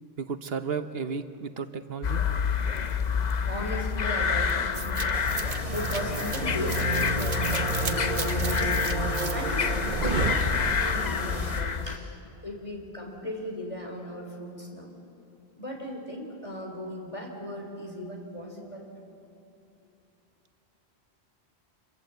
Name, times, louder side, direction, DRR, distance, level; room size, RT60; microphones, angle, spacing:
voice 1, 0.2-2.2, right 5 dB, 70° right, 9 dB, 1.1 m, -33 dB
sound 1, 2.0-12.0, left 6 dB, 45° left, 0.8 m, -28 dB
voice 2, 3.5-8.8 9.3-12.2 12.4-14.9 15.6-18.9, left 1 dB, 30° left, 0 dB, 3.5 m, -37 dB
sound 2, 4.7-11.1, right 4 dB, 50° right, 1.1 m, -31 dB
sound 3, 5.1-11.6, right 1 dB, 30° right, 3.2 m, -40 dB
26.5 x 22.5 x 8.0 m, 2.7 s
omnidirectional pair, 1.1 m